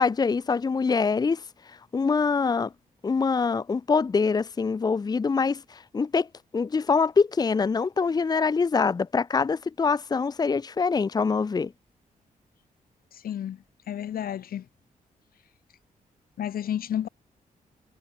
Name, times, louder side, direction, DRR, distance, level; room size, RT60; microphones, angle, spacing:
voice 1, 0.0-1.4 1.9-2.7 3.0-6.3 6.5-11.7, left 5 dB, 25° left, 1.2 m, -24 dB
voice 2, 13.1-13.6 13.9-14.7 16.4-17.1, left 10 dB, 80° left, 4.0 m, -31 dB
wide cardioid pair, 170°, 15 cm